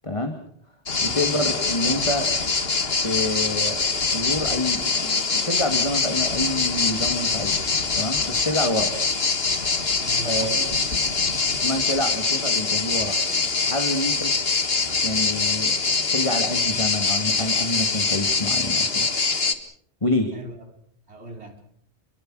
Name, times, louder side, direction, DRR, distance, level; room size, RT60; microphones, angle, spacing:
voice 1, 0.0-0.4 1.0-2.3 3.0-3.8 4.1-7.6 7.9-8.9 10.2-10.6 11.6-13.2 13.6-14.3 15.0-15.7 16.1-19.1 20.0-20.3, left 1 dB, 25° left, 5 dB, 2.3 m, -27 dB
sound 1, 0.9-19.5, left 4 dB, 60° left, 2.0 m, -24 dB
voice 2, 10.0-11.1 13.3-13.5 14.1-14.2 20.3-20.7 21.1-21.6, right 1 dB, 70° right, 3 dB, 4.6 m, -40 dB
27.5 x 22.5 x 6.3 m, 0.64 s
omnidirectional pair, 1.2 m